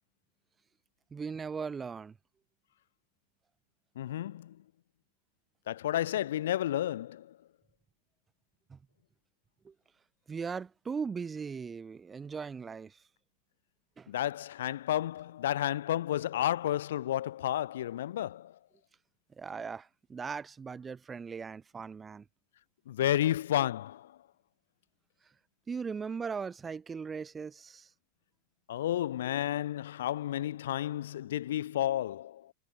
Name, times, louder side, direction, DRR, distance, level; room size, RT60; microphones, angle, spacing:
voice 1, 1.1-2.2 8.7-8.8 9.6-9.7 10.3-13.0 14.0-14.1 19.4-22.2 25.7-27.9, right 5 dB, 20° right, 7.2 m, -38 dB
voice 2, 4.0-4.6 5.7-7.4 14.1-18.5 22.9-24.1 28.7-32.5, left 12 dB, 75° left, 6.1 m, -31 dB
hypercardioid pair, 100°, 0 cm